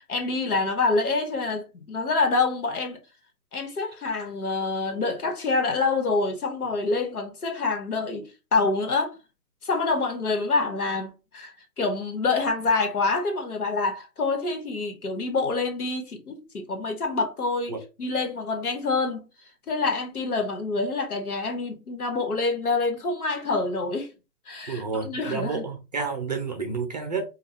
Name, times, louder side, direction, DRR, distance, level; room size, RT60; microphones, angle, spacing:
voice 1, 0.1-3.0 3.5-9.2 9.6-19.3 19.7-24.1 24.5-25.6, left 3 dB, 65° left, 1.5 m, -26 dB
voice 2, 24.7-27.4, right 5 dB, 25° right, 0.6 m, -30 dB
5.0 x 2.4 x 2.8 m
figure-of-eight pair, 140°, 48 cm